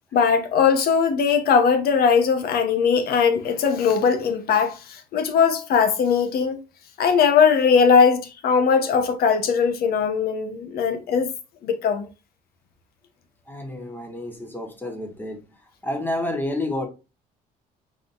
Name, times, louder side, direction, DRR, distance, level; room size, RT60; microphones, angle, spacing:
voice 1, 0.1-6.6 7.0-11.3 11.6-12.1, left 6 dB, 65° left, 1.1 m, -20 dB
voice 2, 13.5-15.4 15.8-16.9, left 1 dB, 10° left, 1.3 m, -29 dB
5.1 x 4.0 x 2.6 m
cardioid pair, 110°, 17 cm